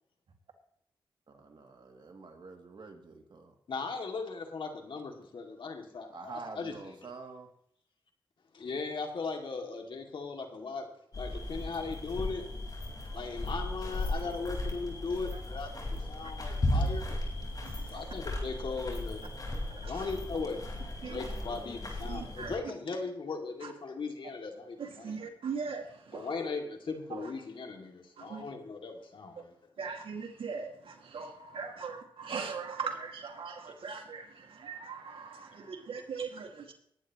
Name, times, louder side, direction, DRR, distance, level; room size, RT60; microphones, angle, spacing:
voice 1, 1.3-3.5 6.1-7.5, right 4 dB, 60° right, 3 dB, 2.5 m, -47 dB
voice 2, 3.7-7.0 8.5-10.9 11.2-12.4 13.1-17.0 17.8-19.2 19.8-20.6 21.0-25.2 26.1-29.7, left 4 dB, 65° left, 3 dB, 2.4 m, -38 dB
sound 1, 11.1-22.6, left 1 dB, 45° left, 4.7 m, -36 dB
voice 3, 17.6-18.0 19.8-20.0 21.0-21.2 22.1-22.5 23.6-23.7 24.8-26.3 27.1-27.3 28.2-28.4 29.8-36.7, right 5 dB, 75° right, 3 dB, 2.2 m, -40 dB
20.0 x 9.9 x 3.1 m, 0.69 s
cardioid pair, 55°, 9 cm